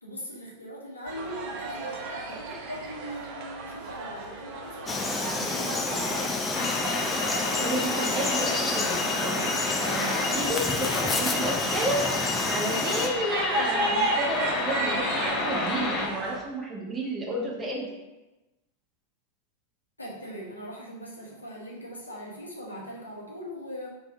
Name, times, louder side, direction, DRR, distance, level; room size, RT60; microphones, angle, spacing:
voice 1, 0.0-6.7 20.0-23.9, equal, 80° left, -4 dB, 1.1 m, -40 dB
sound 1, 1.1-16.4, right 2 dB, 45° right, 0.7 m, -35 dB
Frog, 4.9-13.1, left 3 dB, 15° left, 0.5 m, -29 dB
sound 2, 6.5-16.1, left 3 dB, 40° left, 0.8 m, -31 dB
voice 2, 7.6-17.9, right 1 dB, 20° right, -3 dB, 1.1 m, -31 dB
3.3 x 3.2 x 4.5 m, 1.0 s
figure-of-eight pair, 90°, 0 cm